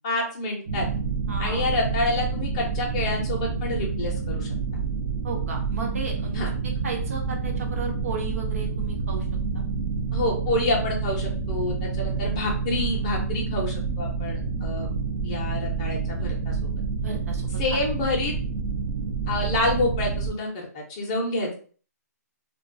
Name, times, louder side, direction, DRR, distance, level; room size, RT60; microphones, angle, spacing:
voice 1, 0.0-0.9 1.4-4.5 6.3-6.5 10.1-14.9 15.2-16.7 17.6-18.3 19.3-21.5, left 2 dB, 20° left, -1 dB, 0.6 m, -28 dB
sound 1, 0.7-20.3, right 4 dB, 25° right, 0.3 m, -28 dB
voice 2, 1.3-1.7 5.2-9.3 9.5-9.6 17.0-17.6, right 4 dB, 55° right, 1 dB, 0.7 m, -34 dB
2.2 x 2.2 x 2.6 m, 0.42 s
hypercardioid pair, 165°, 9 cm